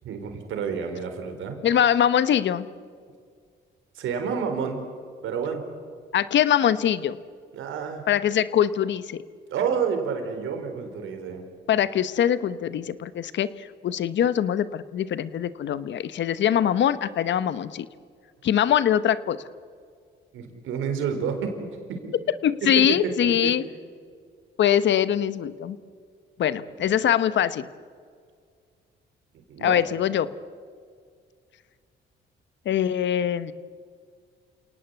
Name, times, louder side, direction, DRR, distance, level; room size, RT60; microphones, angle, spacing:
voice 1, 0.0-1.6 3.9-4.9 5.2-5.6 7.5-8.0 9.5-11.4 20.3-21.6 21.9-22.1 22.6-23.5 29.5-29.9, right 6 dB, 85° right, 6 dB, 4.3 m, -29 dB
voice 2, 1.6-2.7 6.1-7.2 8.1-9.2 11.7-17.9 18.4-19.4 22.4-23.6 24.6-25.8 26.4-27.7 29.6-30.3 32.6-33.5, left 9 dB, 65° left, 15 dB, 1.1 m, -23 dB
28.5 x 18.5 x 8.2 m, 2.1 s
cardioid pair, 90°, 20 cm